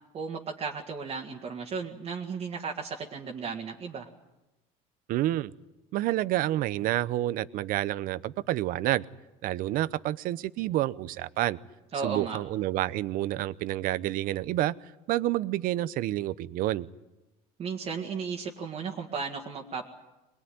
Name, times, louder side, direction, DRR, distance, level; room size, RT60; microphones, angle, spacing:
voice 1, 0.1-4.1 11.9-12.4 17.6-19.9, right 5 dB, 35° right, -2 dB, 2.1 m, -35 dB
voice 2, 5.1-5.5 5.9-9.0 9.4-11.6 12.0-14.7 15.1-16.9, right 15 dB, 60° right, 17 dB, 0.8 m, -29 dB
23.0 x 21.0 x 9.4 m, 1.0 s
cardioid pair, 130°, 17 cm